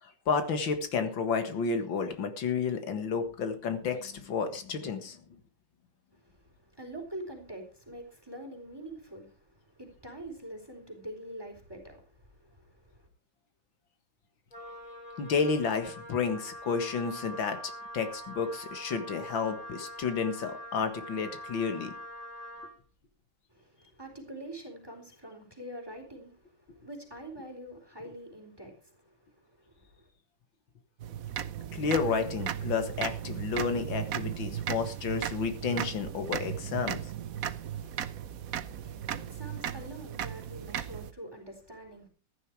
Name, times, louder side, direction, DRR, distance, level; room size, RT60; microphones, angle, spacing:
voice 1, 0.0-5.2 15.2-17.6 17.9-21.9 31.7-37.0, left 5 dB, 80° left, 2.4 m, -31 dB
voice 2, 6.2-13.1 23.5-30.1 38.7-42.1, right 1 dB, 10° right, 4.1 m, -45 dB
Wind instrument woodwind instrument, 14.5-22.8, equal, 20° left, 3.3 m, -44 dB
sound 1, 31.0-41.1, right 10 dB, 55° right, 1.1 m, -36 dB
14.5 x 11.0 x 4.7 m
omnidirectional pair, 2.0 m